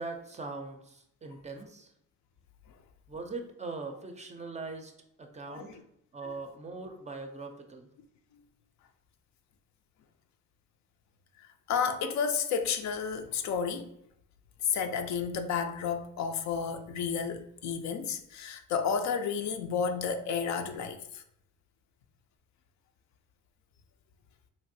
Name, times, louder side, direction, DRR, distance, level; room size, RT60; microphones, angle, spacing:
voice 1, 0.0-1.9 3.1-4.9 5.2-5.7 6.1-7.9, right 3 dB, 25° right, 0.4 m, -41 dB
voice 2, 5.5-5.8 11.7-13.9 14.6-21.2, left 6 dB, 65° left, 0.4 m, -31 dB
3.1 x 2.5 x 2.6 m
cardioid pair, 90°, 30 cm